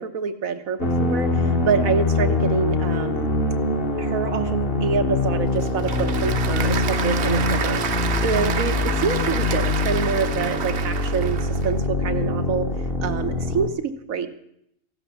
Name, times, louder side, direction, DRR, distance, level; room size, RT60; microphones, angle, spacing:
voice 1, 0.0-3.3 4.0-12.7 13.0-14.3, right 6 dB, 85° right, 8 dB, 1.5 m, -26 dB
sound 1, 0.8-13.7, left 2 dB, 45° left, 1.4 m, -23 dB
Applause / Crowd, 5.2-11.7, right 7 dB, 55° right, 1.0 m, -29 dB
15.0 x 11.5 x 6.9 m, 0.77 s
omnidirectional pair, 1.4 m